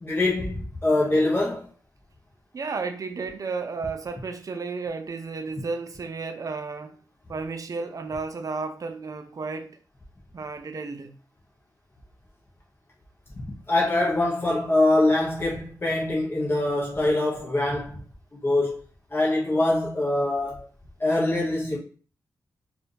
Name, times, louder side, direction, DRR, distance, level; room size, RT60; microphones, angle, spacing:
voice 1, 0.0-1.7 13.7-18.0 18.3-18.7 19.1-20.7 21.0-21.8, left 2 dB, 30° left, 1.1 m, -23 dB
voice 2, 2.5-7.0 7.3-9.8 10.3-11.1, right 4 dB, 50° right, 0.6 m, -33 dB
4.6 x 2.6 x 3.3 m
cardioid pair, 70°, 8 cm